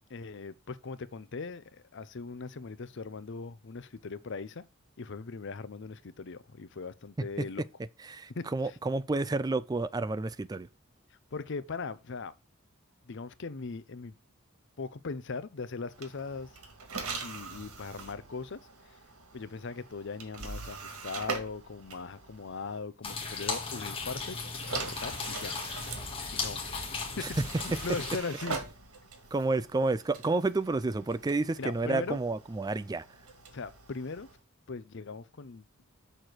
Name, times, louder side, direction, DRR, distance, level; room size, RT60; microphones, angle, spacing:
voice 1, 0.1-4.6 5.0-7.6 8.3-8.8 11.3-12.3 13.0-14.2 14.8-16.5 17.2-19.0 19.3-24.4 24.7-25.5 26.3-28.7 31.6-32.2 33.5-34.3 34.7-35.7, left 4 dB, 55° left, 0.6 m, -39 dB
voice 2, 8.1-10.7 27.2-27.3 29.3-33.0, right 3 dB, 20° right, 0.3 m, -30 dB
sound 1, 15.9-22.8 23.9-34.4, right 4 dB, 90° right, 1.8 m, -43 dB
sound 2, 23.0-28.2, left 4 dB, 25° left, 1.7 m, -36 dB
6.7 x 4.4 x 6.1 m
head